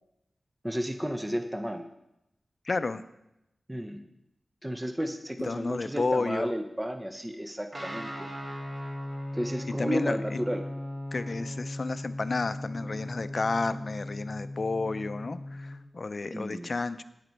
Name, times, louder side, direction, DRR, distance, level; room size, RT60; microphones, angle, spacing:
voice 1, 0.6-1.9 3.7-4.0 4.6-8.3 9.3-10.7 16.3-16.7, equal, 10° right, 7 dB, 0.8 m, -33 dB
voice 2, 2.7-3.0 5.4-6.5 9.8-10.4 11.1-17.0, left 3 dB, 55° left, 13 dB, 0.5 m, -31 dB
Guitar, 7.7-15.8, left 1 dB, 30° right, 1.8 m, -38 dB
9.4 x 9.2 x 4.5 m, 0.85 s
cardioid pair, 55°, 0 cm